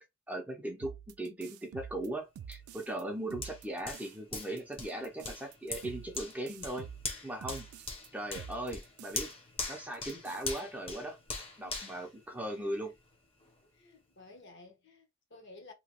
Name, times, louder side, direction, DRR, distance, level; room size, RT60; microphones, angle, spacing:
voice 1, 0.3-0.9 1.2-6.9 7.2-7.7 8.1-9.3 9.7-11.2 11.6-12.9, right 1 dB, 5° right, 0.5 m, -38 dB
sound 1, 0.8-3.0 3.3-4.2 4.4-8.1 8.4-9.3 9.6-9.7 9.9-10.6, right 8 dB, 85° right, 0.3 m, -48 dB
Hands, 3.4-12.9 13.4-13.5, left 3 dB, 25° left, 0.7 m, -42 dB
voice 2, 11.6-12.9 13.7-15.7, left 3 dB, 55° left, 0.9 m, -55 dB
2.9 x 2.2 x 2.9 m
head